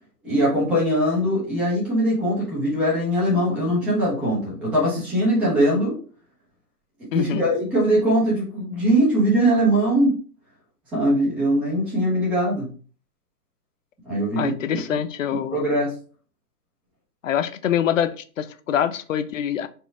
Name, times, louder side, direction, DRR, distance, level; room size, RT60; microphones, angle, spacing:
voice 1, 0.2-6.0 7.1-10.2 10.9-12.7 14.1-14.5 15.5-15.9, right 1 dB, 5° right, -7 dB, 0.6 m, -21 dB
voice 2, 7.1-7.4 14.4-15.6 17.2-19.7, left 9 dB, 55° left, 12 dB, 0.5 m, -25 dB
4.3 x 2.2 x 4.6 m, 0.40 s
hypercardioid pair, 145°, 49 cm